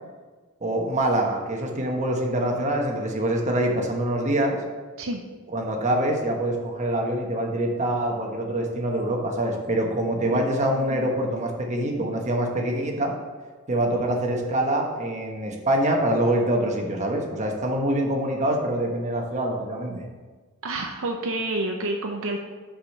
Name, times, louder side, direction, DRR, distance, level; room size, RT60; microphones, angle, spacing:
voice 1, 0.6-4.6 5.5-13.1 13.7-20.0, right 1 dB, 35° right, 1 dB, 1.0 m, -25 dB
voice 2, 10.7-11.1 20.6-22.4, right 2 dB, 65° right, 3 dB, 0.6 m, -29 dB
6.1 x 5.0 x 5.4 m, 1.4 s
head